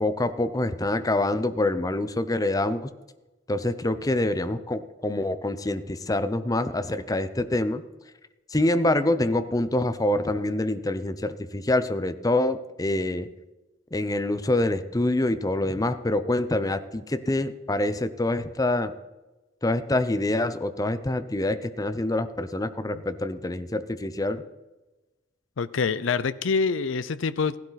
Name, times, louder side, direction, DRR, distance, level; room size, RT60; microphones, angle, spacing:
voice 1, 0.0-2.9 3.5-7.8 8.5-13.3 13.9-18.9 19.6-24.4, left 1 dB, 20° left, 11 dB, 0.7 m, -26 dB
voice 2, 25.6-27.6, left 5 dB, 90° left, 15 dB, 0.6 m, -26 dB
16.0 x 11.5 x 4.1 m, 1.1 s
head